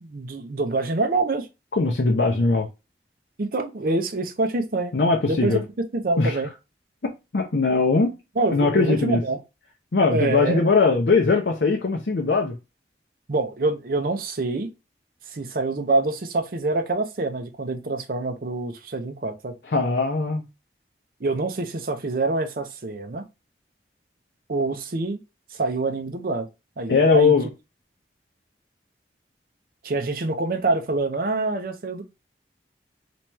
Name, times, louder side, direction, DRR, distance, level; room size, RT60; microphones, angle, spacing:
voice 1, 0.0-1.5 3.4-4.9 5.2-5.6 5.9-6.5 8.4-9.4 10.1-10.6 13.3-14.7 15.3-19.5 21.2-23.2 24.5-25.2 25.5-26.5 26.8-27.4 29.8-32.0, right 2 dB, 50° right, 0.6 m, -26 dB
voice 2, 1.7-2.7 4.9-5.6 6.2-6.4 7.0-8.2 8.5-9.2 9.9-12.6 19.7-20.5 26.9-27.5, left 4 dB, 75° left, 0.7 m, -20 dB
3.0 x 3.0 x 3.3 m
head